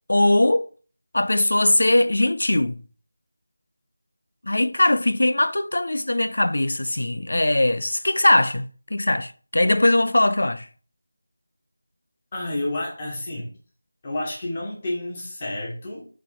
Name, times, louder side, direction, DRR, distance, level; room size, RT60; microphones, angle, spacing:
voice 1, 0.1-0.7 1.1-2.8 4.4-10.7, left 1 dB, 60° left, 0.6 m, -20 dB
voice 2, 12.3-13.6 14.0-16.1, left 1 dB, 25° left, 2.5 m, -30 dB
7.2 x 4.3 x 4.5 m
figure-of-eight pair, 165°, 0 cm